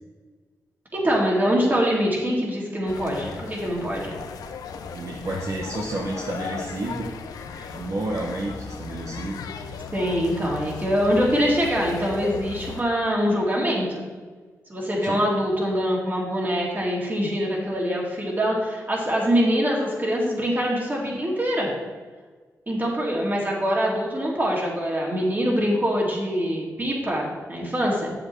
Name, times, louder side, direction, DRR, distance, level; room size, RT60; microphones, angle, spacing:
voice 1, 0.9-4.2 7.6-7.7 9.9-14.0 14.7-21.7 22.7-28.1, equal, 30° right, -3 dB, 2.4 m, -24 dB
sound 1, 2.9-12.8, left 6 dB, 90° left, 0.5 m, -36 dB
voice 2, 4.9-7.1 7.7-9.4 15.0-15.2, right 2 dB, 55° right, -1 dB, 1.0 m, -31 dB
7.5 x 7.3 x 3.2 m, 1.4 s
cardioid pair, 60°, 6 cm